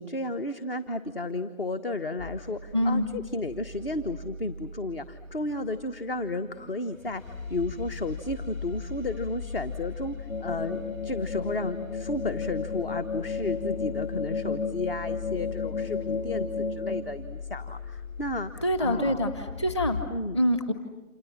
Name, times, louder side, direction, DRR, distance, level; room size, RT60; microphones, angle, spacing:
voice 1, 0.0-19.3 20.1-20.4, left 2 dB, 45° left, 10 dB, 1.1 m, -33 dB
sound 1, 2.2-20.0, left 5 dB, 80° left, 7.2 m, -39 dB
voice 2, 2.7-3.1 18.6-20.0 20.3-20.7, equal, 20° left, 9 dB, 1.2 m, -25 dB
sound 2, 10.3-17.0, left 4 dB, 65° left, 2.8 m, -32 dB
29.0 x 28.0 x 7.2 m, 1.1 s
hypercardioid pair, 170°, 41 cm